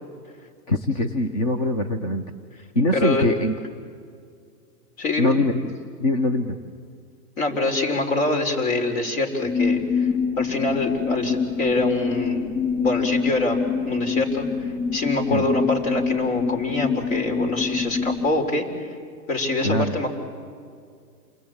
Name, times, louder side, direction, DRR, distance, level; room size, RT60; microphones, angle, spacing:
voice 1, 0.7-2.2 2.7-3.5 5.2-5.7 6.0-6.5 15.3-15.5 19.6-20.0, left 1 dB, 25° left, 7 dB, 0.6 m, -22 dB
voice 2, 2.9-3.3 5.0-5.3 7.4-10.1 10.4-12.5 12.8-13.6 13.9-18.9 19.3-20.1, left 2 dB, 55° left, 4 dB, 4.3 m, -25 dB
sound 1, 9.4-18.3, left 5 dB, 90° left, 3.5 m, -25 dB
28.5 x 21.0 x 8.7 m, 2.2 s
hypercardioid pair, 170°, 49 cm